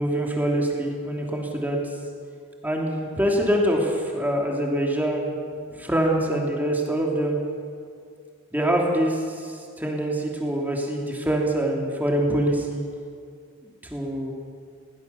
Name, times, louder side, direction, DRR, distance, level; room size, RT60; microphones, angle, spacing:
voice 1, 0.0-1.8 2.6-5.3 5.8-7.4 8.5-12.9 13.9-14.3, right 1 dB, 10° right, -1 dB, 2.9 m, -24 dB
20.5 x 18.0 x 7.0 m, 2.2 s
head